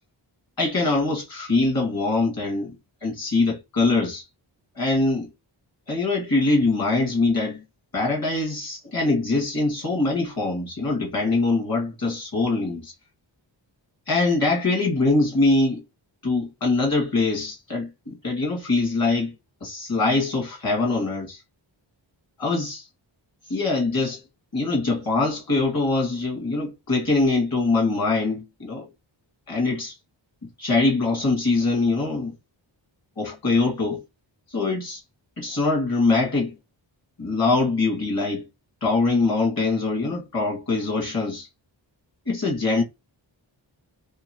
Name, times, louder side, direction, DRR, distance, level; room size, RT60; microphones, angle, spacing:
voice 1, 0.6-2.7 3.0-4.2 4.8-5.3 5.9-7.6 7.9-12.9 14.1-15.8 16.2-19.3 19.6-21.4 22.4-22.8 23.5-24.2 24.5-28.9 29.5-29.9 30.6-32.3 33.2-34.0 34.5-35.0 35.4-36.5 37.2-38.4 38.8-41.5 42.3-42.8, left 3 dB, 50° left, 2.0 m, -23 dB
3.6 x 3.0 x 2.9 m
wide cardioid pair, 105°, 46 cm